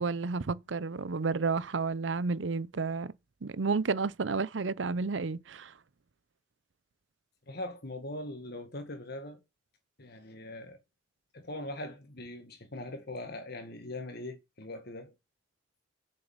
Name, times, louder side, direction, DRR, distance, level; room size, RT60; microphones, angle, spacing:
voice 1, 0.0-3.1 3.4-5.7, right 4 dB, 80° right, 0.6 m, -31 dB
voice 2, 7.5-9.4 10.0-10.8 11.3-15.1, left 1 dB, 60° left, 1.9 m, -41 dB
8.0 x 6.6 x 7.3 m
head